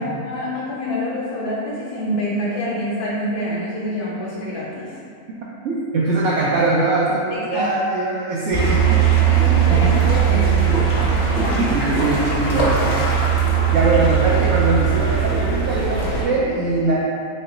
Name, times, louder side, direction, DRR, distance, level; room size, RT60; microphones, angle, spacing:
voice 1, 0.0-4.9 7.3-7.7 9.4-10.5, left 1 dB, 85° left, -6 dB, 1.2 m, -26 dB
voice 2, 5.6-10.8 11.1-11.4 11.7-12.8 13.7-17.0, right 2 dB, 65° right, -6 dB, 0.7 m, -22 dB
sound 1, 8.5-16.2, right 7 dB, 55° left, 1.0 m, -19 dB
4.2 x 2.1 x 3.7 m, 2.3 s
omnidirectional pair, 1.6 m